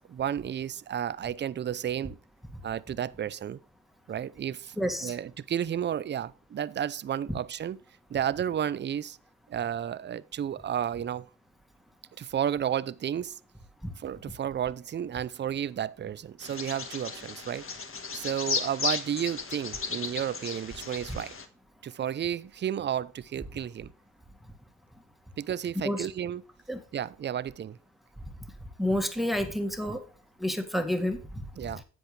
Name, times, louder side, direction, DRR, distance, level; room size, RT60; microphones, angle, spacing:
voice 1, 0.0-2.2 2.6-3.6 4.1-7.8 8.1-9.2 9.5-11.3 12.2-13.4 14.0-17.7 18.1-21.4 21.8-23.9 25.4-26.5 26.9-27.8 31.6-31.8, right 9 dB, 25° right, 0.6 m, -32 dB
voice 2, 4.8-5.1 13.8-13.9 25.8-26.1 26.7-26.8 28.8-30.0 30.4-31.2, equal, ahead, 2.0 m, -29 dB
Bird vocalization bird call bird song, 16.4-21.4, left 5 dB, 30° left, 1.7 m, -35 dB
10.5 x 8.0 x 3.3 m
supercardioid pair, 80°, 43 cm